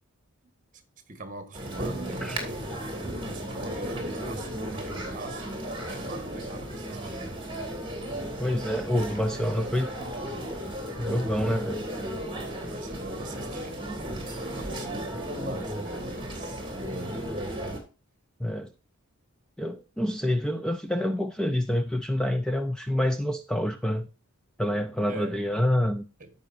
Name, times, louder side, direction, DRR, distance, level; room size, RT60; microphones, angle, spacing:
voice 1, 1.1-2.7 3.2-7.3 12.5-13.8 14.5-17.3 25.1-25.4 26.2-26.3, right 2 dB, 35° right, 1.5 m, -42 dB
sound 1, 1.5-17.8, right 1 dB, 20° right, 2.6 m, -35 dB
voice 2, 2.1-2.4 8.4-9.9 11.0-11.8 18.4-18.7 19.6-24.1 24.6-26.0, left 1 dB, 5° left, 0.5 m, -27 dB
14.5 x 5.3 x 2.6 m
head